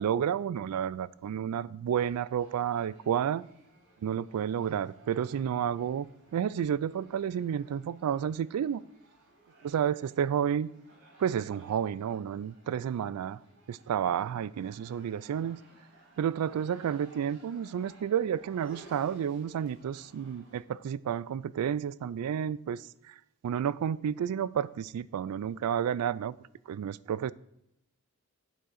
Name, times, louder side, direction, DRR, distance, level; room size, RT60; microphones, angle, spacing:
voice 1, 0.0-3.4 4.0-8.8 9.6-10.7 11.2-13.4 13.7-15.6 16.2-23.1 23.4-26.3 26.7-27.3, right 8 dB, 85° right, 19 dB, 0.3 m, -31 dB
sound 1, 2.0-20.6, right 1 dB, 55° right, 2.6 m, -58 dB
8.2 x 3.7 x 6.4 m, 0.82 s
head